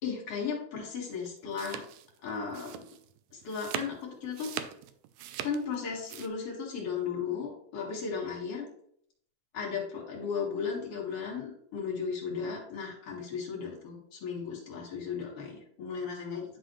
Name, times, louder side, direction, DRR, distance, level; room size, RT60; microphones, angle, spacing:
voice 1, 0.0-1.8 2.2-2.9 3.3-4.5 5.4-8.7 9.5-16.6, left 6 dB, 50° left, -1 dB, 2.5 m, -35 dB
sound 1, 1.1-6.3, right 11 dB, 85° right, 2.3 m, -41 dB
11.0 x 4.1 x 3.1 m, 0.66 s
omnidirectional pair, 3.9 m